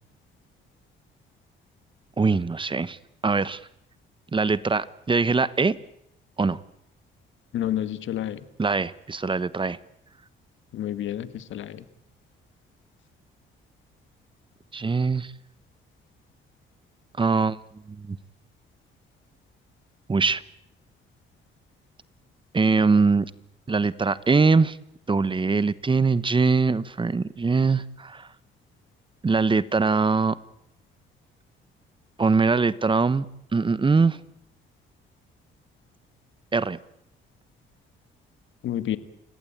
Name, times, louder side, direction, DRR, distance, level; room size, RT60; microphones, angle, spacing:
voice 1, 2.2-3.0 3.2-3.6 4.3-5.8 6.4-6.6 8.6-9.8 14.7-15.3 17.2-17.6 17.9-18.2 20.1-20.4 22.5-23.3 23.7-24.8 25.1-28.3 29.2-30.4 32.2-33.2 33.5-34.2 36.5-36.8, right 4 dB, 25° right, 17 dB, 1.1 m, -22 dB
voice 2, 7.5-8.4 10.7-11.8 38.6-39.0, left 11 dB, 75° left, 12 dB, 1.6 m, -29 dB
30.0 x 18.0 x 8.8 m, 0.78 s
cardioid pair, 90°, 20 cm